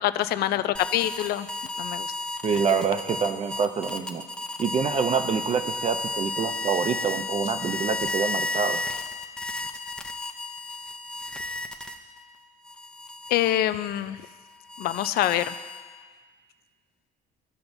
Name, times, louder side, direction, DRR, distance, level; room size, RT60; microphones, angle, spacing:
voice 1, 0.0-1.5 1.8-2.1 13.3-14.2 14.8-15.5, left 13 dB, 70° left, 13 dB, 0.4 m, -25 dB
sound 1, 0.7-12.2 12.6-16.0, left 2 dB, 5° left, 0.6 m, -33 dB
voice 2, 2.4-4.2 4.6-8.8, right 6 dB, 35° right, 8 dB, 0.6 m, -26 dB
14.5 x 5.7 x 2.6 m, 1.5 s
cardioid pair, 110°, 17 cm